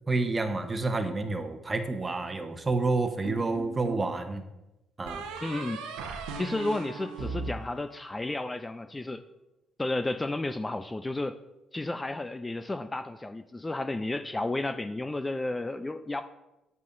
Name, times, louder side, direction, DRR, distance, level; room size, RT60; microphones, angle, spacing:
voice 1, 0.1-4.4 5.0-5.2, right 3 dB, 25° right, 7 dB, 1.0 m, -29 dB
sound 1, 3.2-4.1 5.1-8.4, right 4 dB, 90° right, 0.9 m, -38 dB
voice 2, 5.4-5.8 6.4-9.2 9.8-11.4 11.7-16.2, left 2 dB, 20° left, 10 dB, 0.4 m, -32 dB
9.5 x 8.2 x 2.6 m, 0.97 s
supercardioid pair, 65°, 0 cm